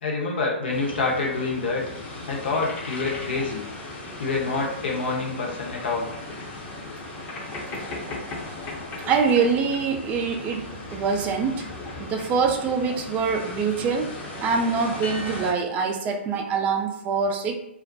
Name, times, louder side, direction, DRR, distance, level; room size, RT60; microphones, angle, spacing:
voice 1, 0.0-1.8 2.3-3.6 4.2-6.1, left 3 dB, 60° left, -2 dB, 0.8 m, -27 dB
sound 1, 0.7-15.5, left 2 dB, 25° left, 0.6 m, -37 dB
voice 2, 9.1-10.6 10.9-11.6 12.0-14.1 14.4-17.6, right 5 dB, 20° right, 4 dB, 0.3 m, -24 dB
2.3 x 2.1 x 2.6 m, 0.77 s
figure-of-eight pair, 125°, 7 cm